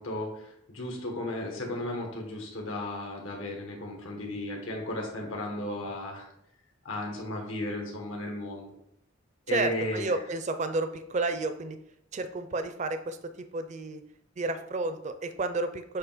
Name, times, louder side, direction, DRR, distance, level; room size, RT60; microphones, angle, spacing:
voice 1, 0.0-6.3 6.8-8.7 9.5-10.2, left 1 dB, 85° left, 0 dB, 1.6 m, -35 dB
voice 2, 9.5-11.8 12.1-13.2 13.5-14.0 14.4-16.0, right 3 dB, 35° right, 9 dB, 0.4 m, -31 dB
8.2 x 2.9 x 5.0 m, 0.74 s
head